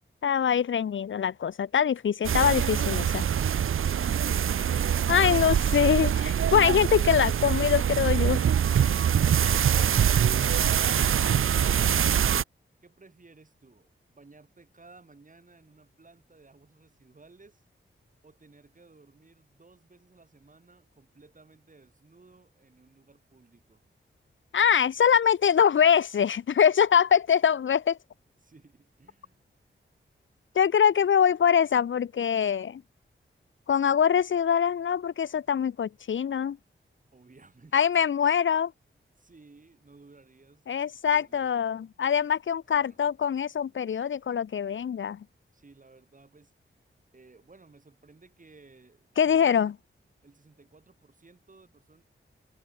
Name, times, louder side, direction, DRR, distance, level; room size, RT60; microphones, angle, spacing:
voice 1, 0.2-3.0 5.1-8.4 24.5-28.0 30.6-32.8 33.7-36.6 37.7-38.7 40.7-45.2 49.2-49.7, left 8 dB, 70° left, 0.6 m, -23 dB
sound 1, 2.2-12.4, right 9 dB, 80° right, 0.6 m, -24 dB
voice 2, 12.8-17.6 18.2-23.8 28.4-29.4 37.1-38.1 39.2-41.5 42.7-43.0 45.5-46.5 47.1-49.7 50.2-52.0, right 3 dB, 40° right, 6.8 m, -56 dB
wide cardioid pair, 105°, 21 cm